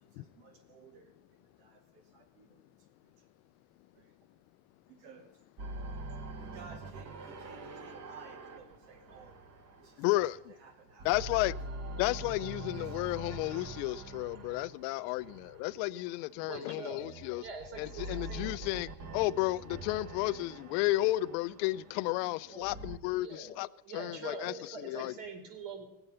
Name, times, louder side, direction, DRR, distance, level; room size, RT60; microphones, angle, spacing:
voice 1, 0.0-2.6 3.0-3.3 3.9-4.1 4.9-5.4 6.4-9.5 9.8-11.1 11.4-11.5 12.8-13.1 16.8-16.9 20.2-20.3 22.6-22.8 25.2-25.3, right 5 dB, 85° right, 2.6 m, -56 dB
sound 1, 5.6-10.5 10.9-16.2 17.0-23.0, right 2 dB, 30° right, 1.1 m, -44 dB
voice 2, 10.0-10.4 11.0-11.5 11.9-17.4 17.8-23.7 23.9-25.1, left 18 dB, 85° left, 0.6 m, -32 dB
voice 3, 16.5-18.8 22.5-22.7 23.1-25.8, right 4 dB, 60° right, 3.7 m, -45 dB
19.0 x 8.0 x 5.5 m
cardioid pair, 135°, 49 cm